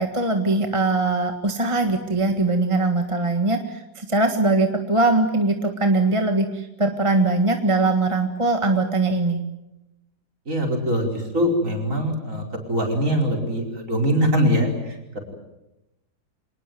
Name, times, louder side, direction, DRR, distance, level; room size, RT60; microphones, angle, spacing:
voice 1, 0.0-9.4, right 2 dB, 20° right, 5 dB, 1.6 m, -21 dB
voice 2, 10.5-15.0, equal, 45° right, 2 dB, 5.3 m, -22 dB
25.5 x 20.0 x 9.3 m, 0.93 s
omnidirectional pair, 1.9 m